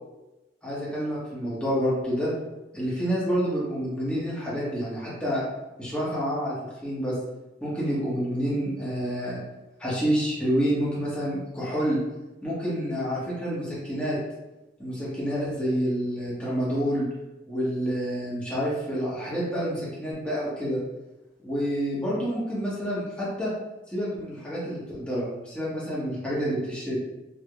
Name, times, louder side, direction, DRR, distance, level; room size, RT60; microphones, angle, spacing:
voice 1, 0.6-2.3 2.7-5.4 5.8-6.5 6.8-7.2 7.6-9.4 9.8-12.0 12.4-14.2 14.8-17.1 17.5-20.8 21.4-23.5 23.9-27.0, equal, 5° left, -9 dB, 0.9 m, -28 dB
3.4 x 2.0 x 3.3 m, 1.0 s
head